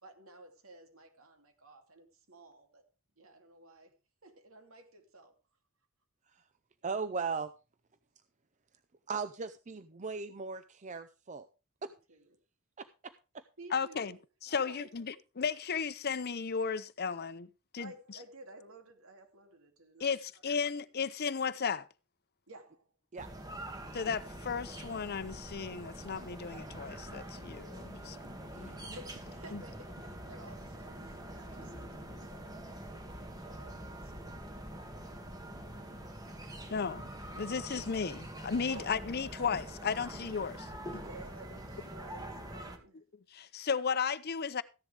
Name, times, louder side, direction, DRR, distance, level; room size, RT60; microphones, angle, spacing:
voice 1, 0.0-2.9 3.2-3.9 4.2-5.3 11.8-12.3 13.6-14.2 14.5-14.9 17.8-20.1 20.5-20.6 22.5-22.8 28.8-32.6 32.9-34.3 38.7-38.9 40.9-43.0, right 2 dB, 70° right, 2.7 m, -53 dB
voice 2, 6.8-7.5 9.1-11.5 11.8-11.9 12.8-13.1 23.1-23.3 28.5-28.8, right 5 dB, 35° right, 0.6 m, -38 dB
voice 3, 13.7-14.1 14.4-17.5 17.7-18.2 20.0-21.9 23.9-28.2 28.6-28.8 29.5-29.6 36.7-37.0 37.4-40.7 43.3-44.6, left 6 dB, 50° left, 0.7 m, -34 dB
sound 1, 23.2-42.8, right 1 dB, 20° right, 2.0 m, -45 dB
14.5 x 10.5 x 3.4 m
head